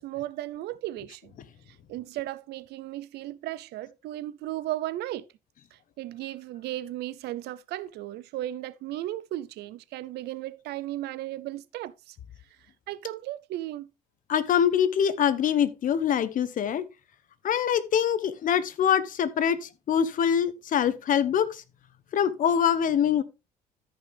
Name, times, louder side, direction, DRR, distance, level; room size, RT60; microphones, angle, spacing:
voice 1, 0.0-1.3 1.7-5.3 5.7-12.2 12.9-13.9, right 14 dB, 80° right, 0.7 m, -35 dB
voice 2, 14.3-16.8 17.4-21.6 22.1-23.2, left 8 dB, 55° left, 1.0 m, -24 dB
13.5 x 5.5 x 3.4 m
cardioid pair, 110°, 17 cm